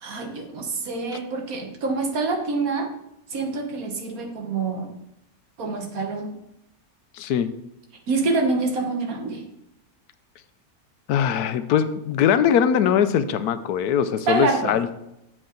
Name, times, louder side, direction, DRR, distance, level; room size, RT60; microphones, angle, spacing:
voice 1, 0.0-2.9 3.3-4.9 5.6-6.4 8.1-9.5 14.3-14.7, right 3 dB, 70° right, 3 dB, 1.7 m, -26 dB
voice 2, 7.2-7.5 11.1-15.0, left 8 dB, 85° left, 12 dB, 1.2 m, -21 dB
7.9 x 7.4 x 3.9 m, 0.85 s
omnidirectional pair, 1.6 m